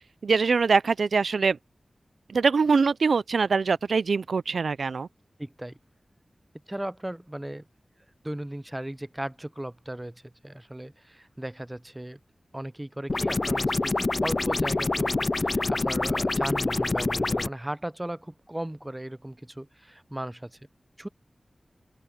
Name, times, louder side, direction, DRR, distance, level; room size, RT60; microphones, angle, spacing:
voice 1, 0.2-1.6 2.3-5.1, right 5 dB, 90° right, 0.4 m, -23 dB
voice 2, 5.4-5.8 6.7-7.7 8.2-12.2 12.5-20.5 21.0-21.1, right 1 dB, 15° right, 0.5 m, -36 dB
sound 1, 13.1-17.5, left 2 dB, 40° left, 0.4 m, -26 dB
open air
wide cardioid pair, 80°, 0 cm